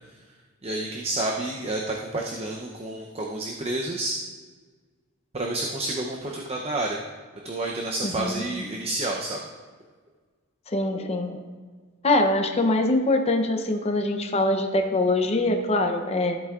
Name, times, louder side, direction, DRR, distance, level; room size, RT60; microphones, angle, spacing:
voice 1, 0.6-4.2 5.3-7.0 7.4-9.4, right 2 dB, 25° right, 0 dB, 0.6 m, -29 dB
voice 2, 8.0-8.4 10.7-11.4 12.0-16.4, left 2 dB, 30° left, 5 dB, 0.6 m, -23 dB
13.5 x 8.2 x 2.4 m, 1.5 s
head